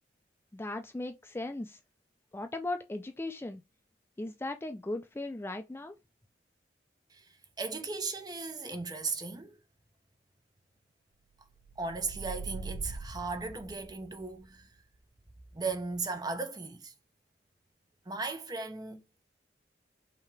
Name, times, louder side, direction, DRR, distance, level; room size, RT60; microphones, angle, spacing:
voice 1, 0.5-1.8 2.3-3.6 4.2-5.9, left 2 dB, 15° left, 0.4 m, -37 dB
voice 2, 7.6-9.6 11.8-14.7 15.5-16.9 18.1-19.2, right 3 dB, 25° right, 0.8 m, -37 dB
sound 1, 11.6-14.2, right 4 dB, 60° right, 0.5 m, -42 dB
5.6 x 2.8 x 3.3 m
head